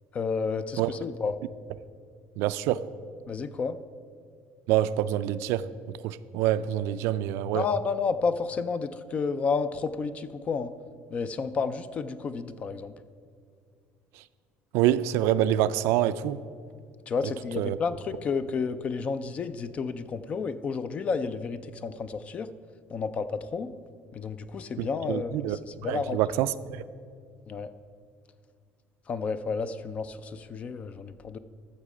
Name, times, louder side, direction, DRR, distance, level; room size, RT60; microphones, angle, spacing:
voice 1, 0.1-1.4 3.3-3.8 7.5-10.7 11.1-12.9 17.1-22.5 22.9-23.7 24.1-26.2 27.5-27.7 29.1-31.4, left 5 dB, 30° left, 13 dB, 0.4 m, -31 dB
voice 2, 2.4-2.9 4.7-7.7 14.7-16.4 17.6-17.8 24.8-25.6 25.9-26.8, right 12 dB, 75° right, 15 dB, 0.3 m, -26 dB
13.5 x 6.5 x 4.9 m, 2.1 s
cardioid pair, 165°, 5 cm